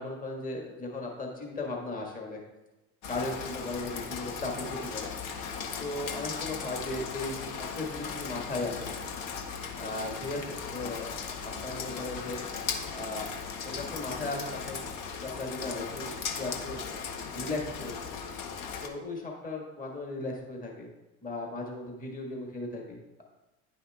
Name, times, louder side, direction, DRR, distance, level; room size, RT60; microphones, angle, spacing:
voice 1, 0.0-2.4 3.1-5.1 5.8-9.0 9.8-11.1 11.4-12.4 12.9-13.3 13.6-14.9 15.2-16.8 17.3-18.1 18.8-20.9 21.2-23.2, left 2 dB, 20° left, 0 dB, 1.5 m, -36 dB
Rain, 3.0-18.9, left 6 dB, 50° left, 1.0 m, -37 dB
9.8 x 5.5 x 2.3 m, 1.0 s
hypercardioid pair, 80°, 41 cm